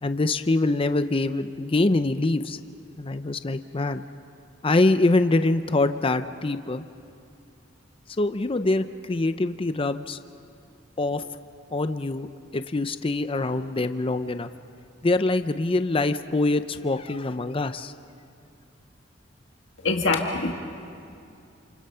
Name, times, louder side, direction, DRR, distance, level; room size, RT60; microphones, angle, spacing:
voice 1, 0.0-2.6 3.0-4.1 4.6-6.8 8.2-10.2 11.0-11.3 11.7-12.3 12.5-14.5 15.0-17.9, left 2 dB, 30° left, 10 dB, 0.6 m, -24 dB
voice 2, 19.8-20.5, left 3 dB, 80° left, 2 dB, 1.9 m, -24 dB
29.0 x 28.0 x 5.7 m, 2.5 s
head